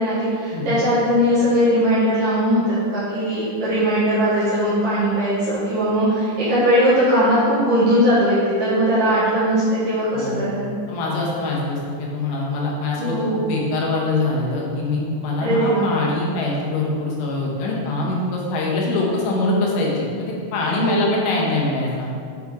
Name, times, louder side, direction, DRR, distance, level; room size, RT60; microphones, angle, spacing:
voice 1, 0.0-10.7 13.0-13.4 15.4-15.9 20.8-21.1, equal, 65° right, -11 dB, 2.2 m, -19 dB
voice 2, 10.9-22.1, left 2 dB, 80° left, -3 dB, 3.5 m, -23 dB
8.1 x 5.1 x 3.6 m, 2.3 s
omnidirectional pair, 5.4 m